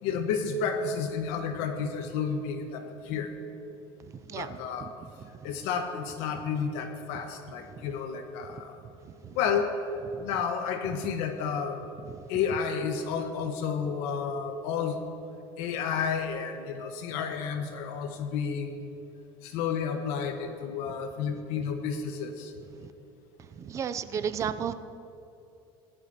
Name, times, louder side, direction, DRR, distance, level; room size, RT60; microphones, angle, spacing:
voice 1, 0.0-3.3 4.3-4.9 5.4-8.8 9.3-9.7 10.2-11.8 12.3-15.0 15.6-18.9 19.4-22.5, left 6 dB, 70° left, 5 dB, 1.3 m, -31 dB
voice 2, 23.6-24.7, right 7 dB, 25° right, 12 dB, 0.4 m, -32 dB
18.0 x 11.5 x 2.9 m, 2.8 s
cardioid pair, 165°, 12 cm